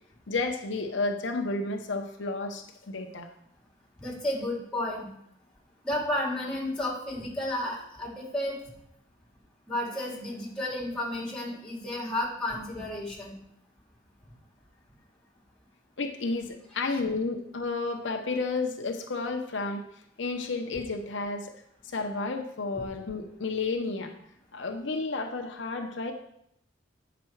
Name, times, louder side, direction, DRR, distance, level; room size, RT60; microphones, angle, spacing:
voice 1, 0.3-3.3 16.0-19.8 20.2-21.5 21.9-24.1 24.5-26.1, left 3 dB, 75° left, 4 dB, 0.8 m, -31 dB
voice 2, 4.0-5.1 5.8-8.6 9.7-13.3 16.9-17.0, left 1 dB, 5° left, -4 dB, 2.5 m, -32 dB
8.6 x 6.0 x 4.6 m, 0.74 s
head